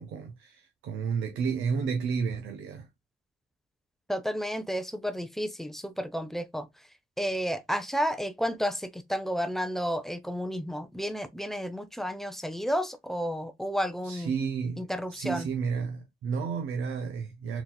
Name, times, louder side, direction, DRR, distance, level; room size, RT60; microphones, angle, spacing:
voice 1, 0.0-2.9 14.0-17.6, right 5 dB, 85° right, 0.8 m, -32 dB
voice 2, 4.1-6.7 7.2-14.3 14.8-15.5, equal, ahead, 0.5 m, -31 dB
4.0 x 2.8 x 2.2 m
cardioid pair, 90°, 20 cm